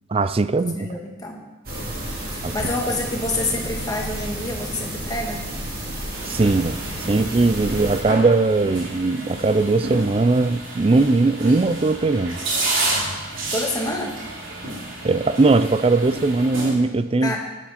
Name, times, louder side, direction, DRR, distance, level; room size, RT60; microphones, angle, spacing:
voice 1, 0.1-0.9 2.4-2.5 6.2-6.8 7.1-12.4 15.0-17.3, right 3 dB, 30° right, 14 dB, 0.4 m, -19 dB
voice 2, 0.8-1.4 2.3-5.4 13.5-14.2 17.2-17.4, left 1 dB, 20° left, 0 dB, 1.8 m, -27 dB
sound 1, 1.6-8.0, right 1 dB, 50° right, 2.9 m, -31 dB
sound 2, 6.1-16.7, right 2 dB, 90° right, 3.1 m, -30 dB
14.5 x 10.0 x 4.3 m, 1.2 s
head